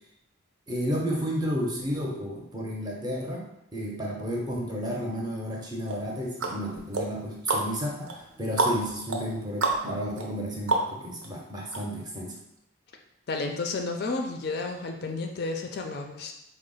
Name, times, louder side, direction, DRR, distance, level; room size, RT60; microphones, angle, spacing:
voice 1, 0.7-12.4, equal, 20° right, -1 dB, 0.6 m, -32 dB
sound 1, 5.9-11.3 11.7-11.8, right 3 dB, 75° right, 0.6 m, -30 dB
voice 2, 13.3-16.3, left 3 dB, 50° left, 3 dB, 0.4 m, -31 dB
4.0 x 2.0 x 3.8 m, 0.82 s
head